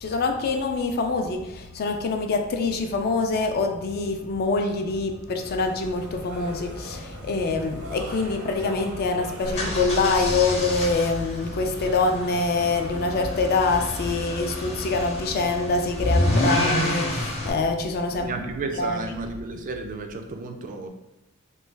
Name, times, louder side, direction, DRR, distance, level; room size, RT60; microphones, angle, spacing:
voice 1, 0.0-18.3 18.7-19.1, left 3 dB, 45° left, 4 dB, 0.3 m, -25 dB
sound 1, 5.4-14.4, right 1 dB, 75° right, 0.7 m, -41 dB
sound 2, 9.4-17.5, left 1 dB, 30° left, 0.7 m, -28 dB
voice 2, 18.2-20.9, right 3 dB, 40° right, 5 dB, 0.3 m, -32 dB
3.1 x 2.2 x 3.2 m, 0.92 s
head